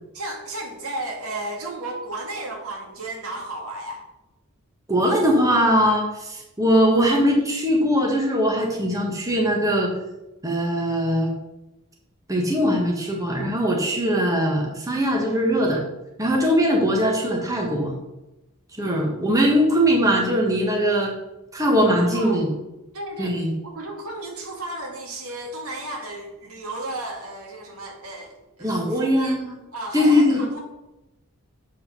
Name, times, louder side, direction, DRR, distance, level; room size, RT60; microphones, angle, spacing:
voice 1, 0.1-4.0 16.6-16.8 22.0-22.4 22.9-23.4 23.6-29.4 29.7-30.6, right 2 dB, 80° right, 1 dB, 2.2 m, -34 dB
voice 2, 4.9-9.9 10.4-11.3 12.3-15.8 16.2-17.9 18.8-21.1 21.5-22.5 23.2-23.5 28.6-29.5 29.9-30.4, equal, 15° right, -1 dB, 1.4 m, -21 dB
7.5 x 5.4 x 6.0 m, 0.95 s
head